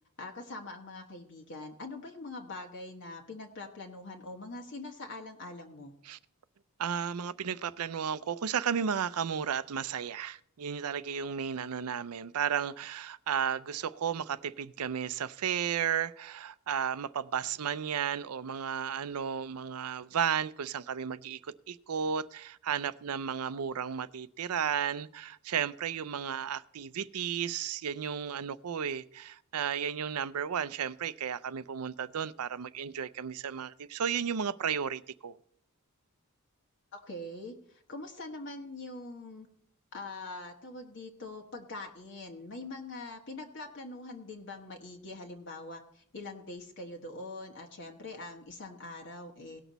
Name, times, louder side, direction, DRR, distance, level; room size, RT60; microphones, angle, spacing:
voice 1, 0.2-5.9 36.9-39.5 39.9-49.6, left 2 dB, 55° left, 1.3 m, -43 dB
voice 2, 6.8-21.4 21.7-35.4, right 7 dB, 85° right, 0.5 m, -33 dB
18.0 x 6.1 x 4.0 m
head